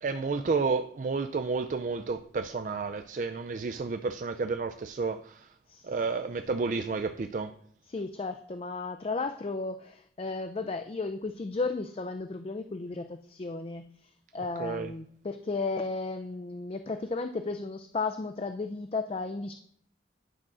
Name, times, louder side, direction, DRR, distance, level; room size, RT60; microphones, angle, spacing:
voice 1, 0.0-5.5 5.8-7.5 14.6-14.9, right 4 dB, 45° right, 0.3 m, -31 dB
voice 2, 7.9-13.8 14.3-19.5, left 3 dB, 30° left, 0.4 m, -34 dB
9.8 x 3.7 x 6.0 m
head